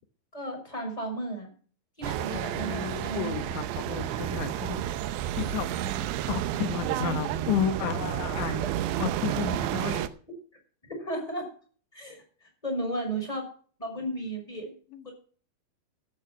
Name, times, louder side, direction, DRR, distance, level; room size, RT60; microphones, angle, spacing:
voice 1, 0.3-1.5 2.0-3.3 8.3-8.7 9.8-10.0 11.0-11.5 11.9-12.2 12.6-13.5 13.8-14.7 15.0-15.1, right 1 dB, 10° left, 2 dB, 6.0 m, -34 dB
sound 1, 2.0-10.1, right 11 dB, 85° right, 3.0 m, -31 dB
voice 2, 2.3-4.9 5.4-5.7 6.3-8.5 9.0-10.0 14.9-15.0, left 8 dB, 80° left, 8 dB, 3.7 m, -32 dB
14.5 x 8.7 x 6.0 m, 0.43 s
omnidirectional pair, 5.1 m